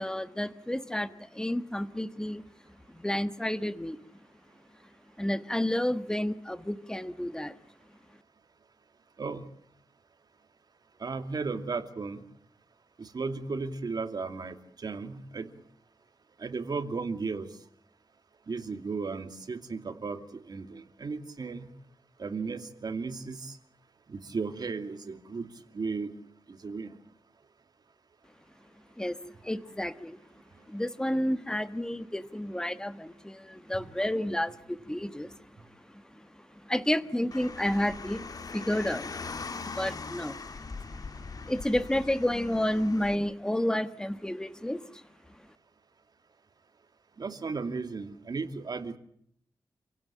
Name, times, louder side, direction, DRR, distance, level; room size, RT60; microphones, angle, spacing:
voice 1, 0.0-2.4 2.9-4.0 5.2-7.5 29.0-29.2 29.4-30.2 30.7-35.4 35.9-36.3 36.6-38.2 38.5-39.3 39.6-40.4 41.0-41.1 41.5-45.0, left 1 dB, 10° left, 11 dB, 1.3 m, -31 dB
voice 2, 11.0-12.2 13.0-15.5 16.4-17.5 18.5-21.7 22.2-23.6 24.1-26.1 26.5-26.9 33.7-33.8 47.2-49.0, right 4 dB, 55° right, 7 dB, 2.6 m, -35 dB
Car, 37.3-43.2, left 4 dB, 50° left, 1.6 m, -41 dB
28.0 x 16.5 x 8.7 m, 0.68 s
wide cardioid pair, 125°, 8 cm